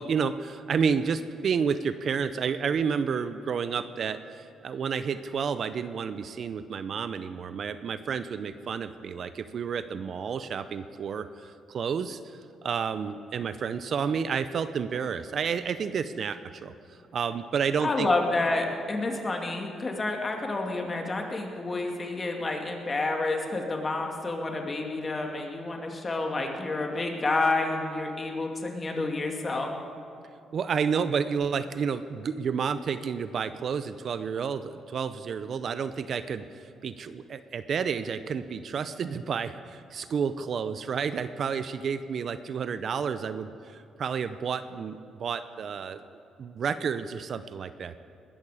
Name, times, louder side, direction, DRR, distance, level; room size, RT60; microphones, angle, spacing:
voice 1, 0.0-18.1 30.5-46.0 46.4-48.0, right 6 dB, 55° right, 12 dB, 0.6 m, -30 dB
voice 2, 17.8-29.7, left 2 dB, 30° left, 2 dB, 2.2 m, -29 dB
20.0 x 13.5 x 4.9 m, 2.5 s
cardioid pair, 90°, 0 cm